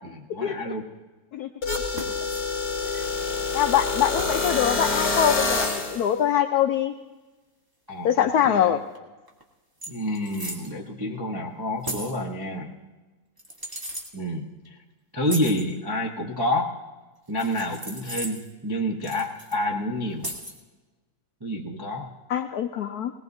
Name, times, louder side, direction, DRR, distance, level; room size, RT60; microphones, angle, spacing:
voice 1, 0.0-0.9 7.9-8.7 9.9-12.8 14.1-14.5 15.1-16.7 17.3-20.3 21.4-22.1, left 1 dB, 40° right, -2 dB, 0.3 m, -28 dB
sound 1, 1.6-6.0, left 3 dB, 55° left, 2.5 m, -26 dB
sound 2, 1.9-2.5 4.2-4.6 6.6-6.7 9.0-9.1 9.3-9.4 9.8-10.7 11.8-12.2 13.4-14.1 15.2-15.6 17.4-18.5 19.0-19.6 20.2-20.6, equal, 15° right, 0.8 m, -36 dB
voice 2, 3.5-6.9 8.0-8.8 22.3-23.1, left 9 dB, 85° left, 7 dB, 0.8 m, -23 dB
20.0 x 18.0 x 2.7 m, 1.2 s
omnidirectional pair, 2.2 m